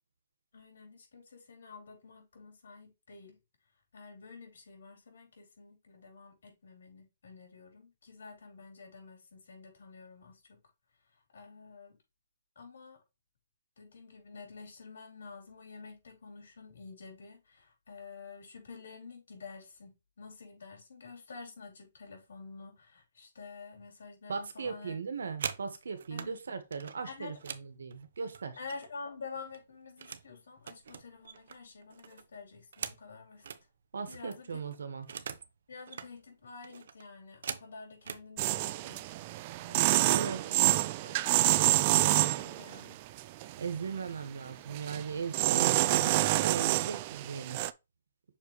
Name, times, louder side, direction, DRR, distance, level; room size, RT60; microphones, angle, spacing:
voice 1, 0.5-3.4 3.9-10.6 11.3-12.0 12.6-13.0 13.8-24.9 26.1-26.4 27.1-27.4 28.6-33.4 34.1-34.5 35.7-39.1 39.7-40.6 41.0-41.3 41.7-43.0, left 4 dB, 75° left, 4.3 m, -49 dB
voice 2, 24.3-28.6 33.9-35.1 40.1-40.6 43.6-47.6, right 5 dB, 90° right, 1.6 m, -38 dB
sound 1, 25.0-26.3 26.7-29.0 29.3-30.3 30.6-33.6 34.0-34.1 34.3-35.5 35.8-36.1 36.6-38.3 39.1-39.3 39.6-39.9 40.2-40.7, right 7 dB, 65° right, 0.8 m, -43 dB
sound 2, 38.4-42.8 43.2-43.8 44.7-45.0 45.3-47.7, right 17 dB, 30° right, 0.3 m, -27 dB
6.6 x 4.7 x 3.1 m
hypercardioid pair, 160°, 0 cm